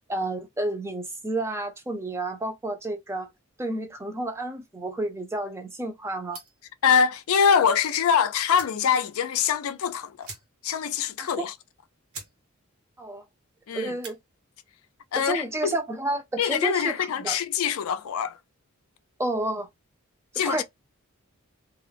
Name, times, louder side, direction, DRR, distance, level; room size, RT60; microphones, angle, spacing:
voice 1, 0.1-3.3 3.6-6.4 11.2-11.5 13.0-13.2 13.7-14.2 15.2-17.4 19.2-19.7 20.5-20.6, right 2 dB, 10° right, 0.5 m, -30 dB
sound 1, 6.3-6.7 8.0-8.1 8.5-8.9 9.2-9.3 9.5-9.7 10.2-10.8 11.1-11.2 11.7-11.8 12.1-12.4 12.7-13.1 13.8-14.2, right 4 dB, 75° right, 1.0 m, -43 dB
voice 2, 6.8-10.3 10.6-11.5 13.7-13.9 15.1-15.8 16.4-18.4 20.3-20.6, left 7 dB, 75° left, 0.4 m, -24 dB
2.2 x 2.0 x 3.3 m
head